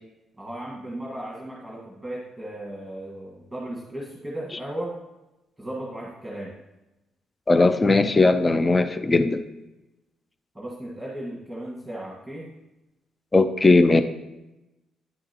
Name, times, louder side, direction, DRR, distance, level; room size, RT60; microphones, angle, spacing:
voice 1, 0.4-5.0 5.6-6.5 10.5-12.5, right 1 dB, 5° right, -4 dB, 1.5 m, -36 dB
voice 2, 7.5-9.4 13.3-14.0, left 3 dB, 25° left, 11 dB, 0.4 m, -18 dB
9.8 x 6.0 x 2.9 m, 0.98 s
cardioid pair, 90°, 0 cm